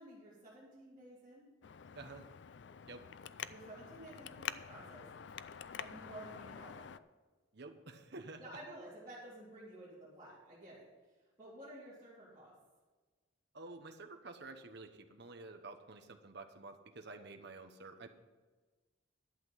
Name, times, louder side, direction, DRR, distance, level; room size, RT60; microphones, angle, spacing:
voice 1, 0.0-1.5 3.5-5.1 5.8-6.9 8.4-10.9 11.4-12.5, right 1 dB, 20° right, -12 dB, 3.5 m, -52 dB
Traffic noise roadway noise, 1.6-7.0, left 8 dB, 60° left, 0.4 m, -47 dB
voice 2, 1.9-2.2 2.9-3.0 7.5-8.4 13.5-18.1, right 3 dB, 55° right, 6 dB, 1.0 m, -50 dB
11.5 x 8.1 x 5.6 m, 1.3 s
head